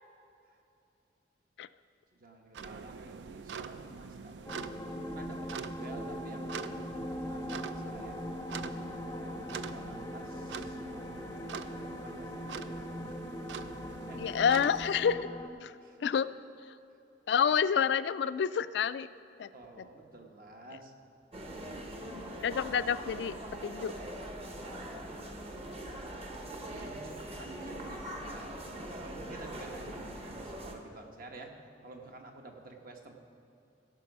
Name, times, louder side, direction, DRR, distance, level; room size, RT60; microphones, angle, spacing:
voice 1, 2.1-4.5 4.8-8.2 9.1-11.0 11.4-13.3 14.1-14.3 15.8-16.0 19.5-20.9 26.7-28.6 29.0-31.5 31.8-33.1, right 2 dB, 55° right, 3 dB, 1.2 m, -50 dB
sound 1, 2.5-15.1, right 6 dB, 85° right, 0.4 m, -45 dB
sound 2, 4.5-15.5, left 1 dB, 15° left, 0.5 m, -40 dB
voice 2, 14.2-15.3 15.6-15.7 16.0-16.3 17.3-19.1 19.4-19.5 22.4-23.3 23.6-23.9, left 7 dB, 70° left, 16 dB, 0.3 m, -28 dB
sound 3, 21.3-30.7, right 1 dB, 35° right, 1.1 m, -42 dB
17.5 x 6.1 x 5.4 m, 2.8 s
head